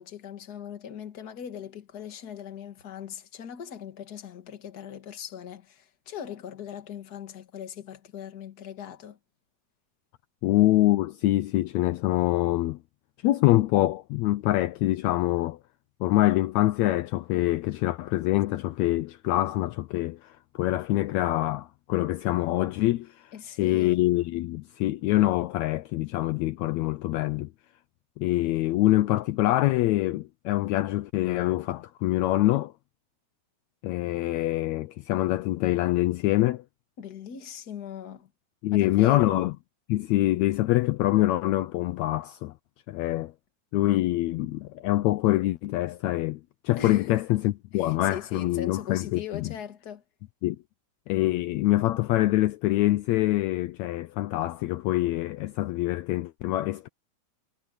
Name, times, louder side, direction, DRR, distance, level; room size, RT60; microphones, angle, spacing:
voice 1, 0.0-9.2 23.3-24.0 37.0-38.3 38.7-39.5 46.8-47.2 47.7-50.0, left 8 dB, 40° left, 1.8 m, -40 dB
voice 2, 10.4-12.8 13.2-15.6 16.0-23.3 23.6-27.5 28.2-32.7 33.8-36.6 38.6-39.5 39.9-42.5 42.9-43.3 43.7-49.5 50.4-50.6 51.1-56.9, left 16 dB, 80° left, 1.8 m, -25 dB
omnidirectional pair, 3.4 m